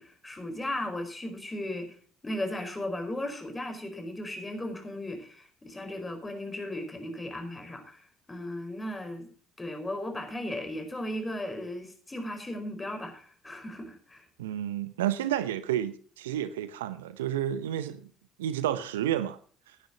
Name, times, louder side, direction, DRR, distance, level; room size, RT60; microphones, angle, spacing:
voice 1, 0.0-2.0 2.2-9.3 9.6-14.2, left 1 dB, 20° left, 4.8 m, -36 dB
voice 2, 14.4-18.0 18.4-19.4, right 11 dB, 80° right, 0.8 m, -30 dB
18.5 x 10.0 x 2.9 m
hypercardioid pair, 55°, 0 cm